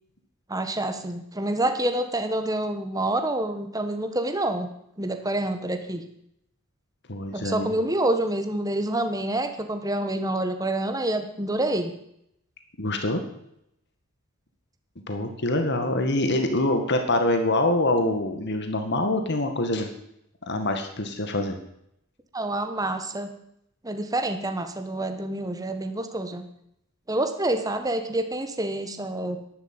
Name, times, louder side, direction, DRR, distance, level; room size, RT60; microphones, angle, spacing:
voice 1, 0.5-4.7 5.0-6.0 7.3-11.9 22.3-23.3 23.8-26.4 27.1-29.4, right 1 dB, 15° right, 7 dB, 1.4 m, -27 dB
voice 2, 7.1-7.7 12.8-13.2 15.1-19.9 20.5-21.6, left 1 dB, 55° left, 6 dB, 1.9 m, -25 dB
11.5 x 11.5 x 8.9 m, 0.77 s
head